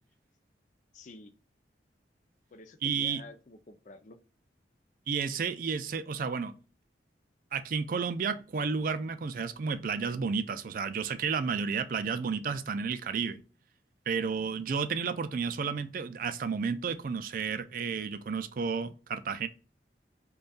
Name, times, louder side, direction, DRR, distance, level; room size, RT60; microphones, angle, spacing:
voice 1, 0.9-1.3 2.5-4.2, left 2 dB, 45° left, 0.5 m, -50 dB
voice 2, 2.8-3.2 5.1-6.5 7.5-13.4 14.1-19.5, right 5 dB, 50° right, 0.4 m, -32 dB
5.2 x 2.3 x 2.3 m
head